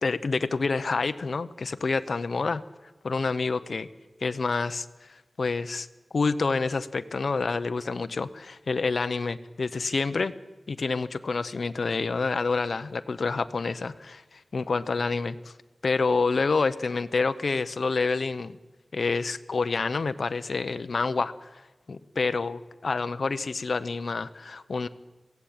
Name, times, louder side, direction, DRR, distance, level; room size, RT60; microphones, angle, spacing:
voice 1, 0.0-2.6 3.0-3.9 4.2-5.9 6.1-10.3 10.7-15.5 15.8-18.6 18.9-21.6 21.9-24.9, left 4 dB, 80° left, 11 dB, 0.8 m, -28 dB
22.5 x 16.5 x 8.8 m, 1.2 s
wide cardioid pair, 70°, 0 cm